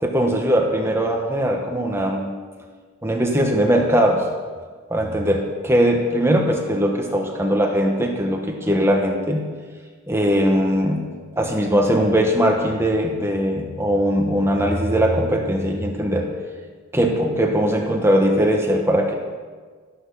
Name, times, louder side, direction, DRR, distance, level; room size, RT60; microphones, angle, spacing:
voice 1, 0.0-2.3 3.0-4.3 4.9-9.4 10.1-16.3 16.9-19.1, equal, 15° right, 1 dB, 1.3 m, -20 dB
13.5 x 11.0 x 5.6 m, 1.5 s
head